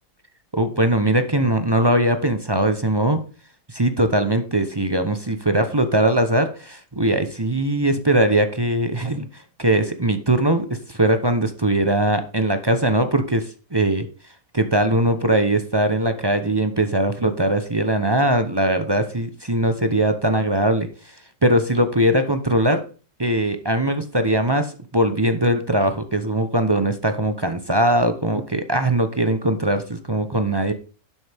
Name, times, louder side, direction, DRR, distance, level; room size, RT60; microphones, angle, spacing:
voice 1, 0.5-3.2 3.7-14.1 14.5-20.9 21.4-22.8 23.2-30.7, right 1 dB, 20° right, 9 dB, 0.7 m, -20 dB
11.0 x 7.8 x 3.5 m, 0.36 s
omnidirectional pair, 1.7 m